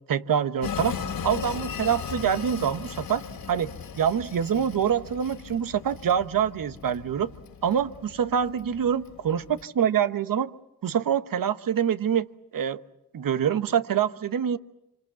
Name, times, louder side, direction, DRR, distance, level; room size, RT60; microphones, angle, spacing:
voice 1, 0.1-3.2 3.5-3.7 4.0-7.3 7.6-10.5 10.8-12.3 12.5-12.8 13.1-14.6, right 8 dB, 70° right, 12 dB, 1.2 m, -25 dB
Train, 0.6-9.6, left 7 dB, 80° left, 3.0 m, -38 dB
26.5 x 26.0 x 7.4 m, 0.90 s
cardioid pair, 50°, 35 cm